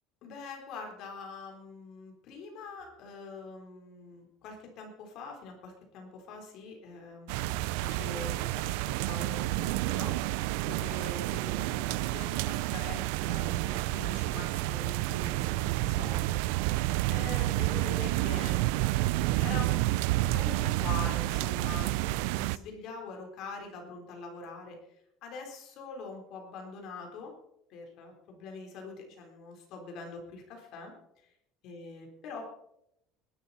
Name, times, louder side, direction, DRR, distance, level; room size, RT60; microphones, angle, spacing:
voice 1, 0.2-18.9 19.4-24.8 25.2-27.3 27.7-31.3 31.6-32.5, left 4 dB, 45° left, 2 dB, 3.7 m, -44 dB
sound 1, 7.3-22.6, right 18 dB, 75° right, 0.4 m, -30 dB
20.0 x 11.5 x 4.2 m, 0.79 s
cardioid pair, 180°, 0 cm